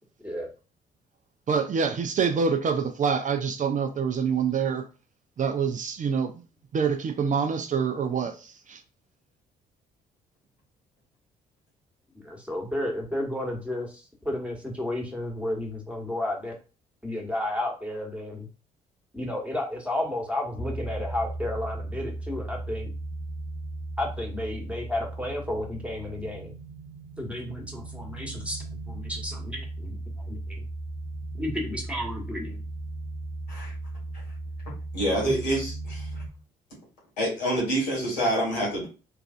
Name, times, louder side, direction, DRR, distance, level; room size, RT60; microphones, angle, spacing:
voice 1, 1.5-4.8 5.4-6.4 6.7-8.8, right 6 dB, 40° right, 0.5 m, -26 dB
voice 2, 12.2-16.5 17.0-18.5 19.1-22.9 24.0-26.5 27.2-30.0 30.2-30.6 31.4-32.6, left 1 dB, 5° right, 1.2 m, -32 dB
sound 1, 20.6-36.3, right 2 dB, 90° right, 0.6 m, -37 dB
voice 3, 34.9-36.1 37.2-38.8, right 1 dB, 85° left, 1.5 m, -26 dB
3.2 x 2.5 x 2.5 m
hypercardioid pair, 45°, 21 cm